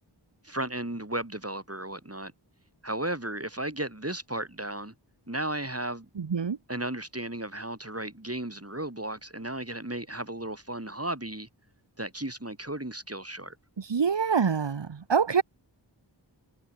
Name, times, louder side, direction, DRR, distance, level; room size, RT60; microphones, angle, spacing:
voice 1, 0.4-2.3 2.8-4.9 5.3-6.1 6.7-11.5 12.0-13.6, right 1 dB, 30° right, 7.7 m, -34 dB
voice 2, 6.2-6.6 13.8-15.4, right 6 dB, 70° right, 1.0 m, -25 dB
wide cardioid pair, 45°, 45 cm